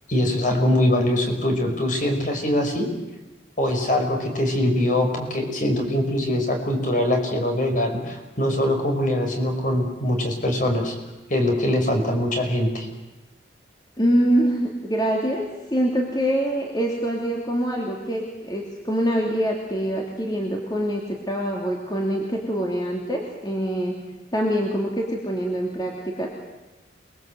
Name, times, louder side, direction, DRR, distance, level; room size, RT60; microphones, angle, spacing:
voice 1, 0.1-2.9 3.6-10.9 11.3-12.9, left 1 dB, 45° left, 3 dB, 5.1 m, -22 dB
voice 2, 14.0-23.9 24.3-26.3, equal, 20° left, -1 dB, 2.8 m, -24 dB
28.5 x 21.0 x 8.0 m, 1.1 s
head